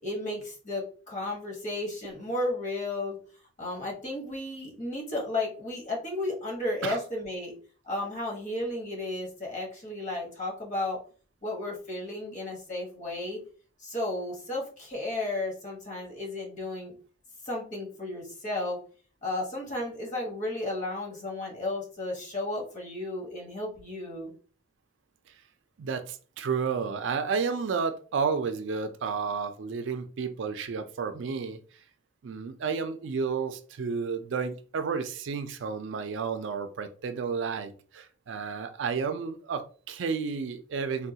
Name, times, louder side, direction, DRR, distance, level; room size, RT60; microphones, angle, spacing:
voice 1, 0.0-3.2 3.6-7.5 7.8-11.0 11.4-13.4 13.8-17.0 17.4-18.8 19.2-24.3, left 2 dB, 40° left, -1 dB, 1.1 m, -33 dB
voice 2, 25.8-31.6 32.2-41.1, right 5 dB, 70° right, 9 dB, 0.4 m, -31 dB
3.6 x 2.3 x 2.7 m, 0.40 s
head